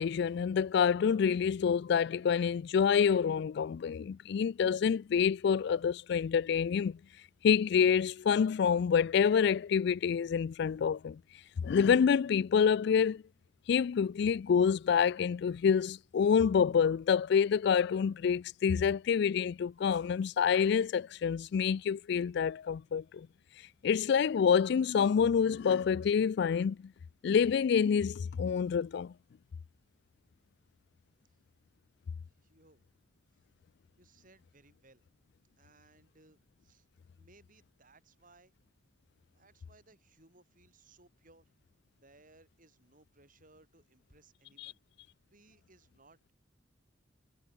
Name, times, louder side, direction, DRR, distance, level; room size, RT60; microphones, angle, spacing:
voice 1, 0.0-7.0 7.4-11.2 11.6-13.2 13.7-23.3 23.8-26.9 27.2-29.1 44.6-44.7, left 7 dB, 60° left, 0.3 m, -27 dB
voice 2, 32.4-32.9 33.3-33.4 34.0-35.0 35.6-36.9 37.1-38.5 39.3-41.5 41.9-44.8 45.3-46.3, right 2 dB, 45° right, 7.4 m, -63 dB
head